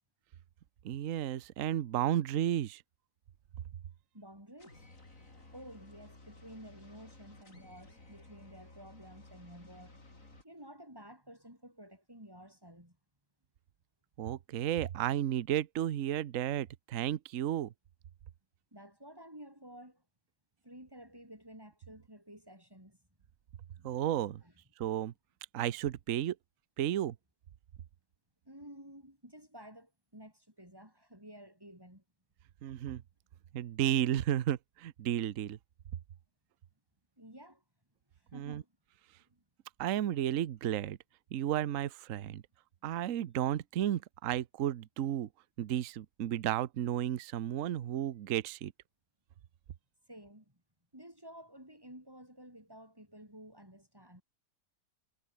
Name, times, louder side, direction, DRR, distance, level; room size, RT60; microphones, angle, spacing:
voice 1, 0.8-2.8 14.2-17.7 23.8-24.4 24.8-25.1 25.5-26.4 26.8-27.1 32.6-33.0 33.5-35.6 38.3-38.6 39.8-41.0 41.3-42.4 42.8-45.3 45.6-48.7, right 11 dB, 55° right, 1.1 m, -33 dB
voice 2, 4.1-4.9 5.5-13.0 18.7-20.0 20.6-23.0 23.7-24.5 28.4-32.0 37.2-37.6 38.2-38.7 39.3-39.4 50.1-50.6 50.9-54.2, equal, 10° right, 7.0 m, -53 dB
sound 1, 4.6-10.4, left 2 dB, 45° left, 5.6 m, -56 dB
omnidirectional pair, 1.9 m